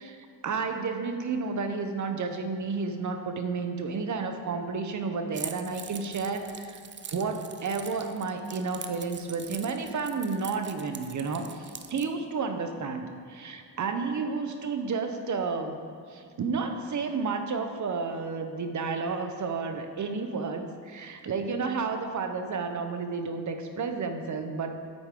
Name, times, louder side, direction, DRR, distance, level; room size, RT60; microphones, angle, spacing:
voice 1, 0.0-6.8 7.1-15.8 16.1-24.9, right 4 dB, 45° right, 6 dB, 0.8 m, -31 dB
Keys jangling, 5.3-12.1, right 7 dB, 30° right, 0.4 m, -43 dB
8.3 x 8.0 x 3.7 m, 2.3 s
cardioid pair, 115°, 40 cm